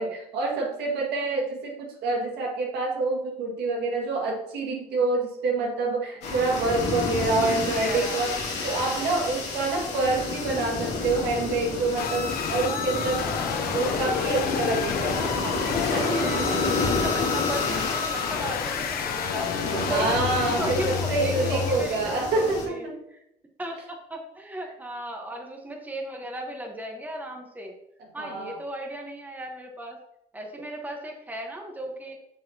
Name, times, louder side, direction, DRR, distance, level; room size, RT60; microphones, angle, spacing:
voice 1, 0.0-8.4 8.6-13.3 13.7-15.2 15.9-16.7 19.7-23.0 28.2-28.6, right 3 dB, 80° right, -1 dB, 1.9 m, -27 dB
sound 1, 6.2-22.7, left 3 dB, 90° left, 2.3 m, -30 dB
voice 2, 7.4-8.4 8.6-8.9 9.2-9.4 12.7-14.2 15.0-16.5 16.9-19.5 19.8-20.1 20.6-23.2 23.6-27.8 28.1-30.0 30.3-32.2, right 1 dB, 10° right, 2 dB, 1.2 m, -36 dB
sound 2, 12.0-21.8, left 7 dB, 60° left, 0.8 m, -31 dB
6.9 x 6.5 x 2.8 m, 0.80 s
cardioid pair, 110°, 17 cm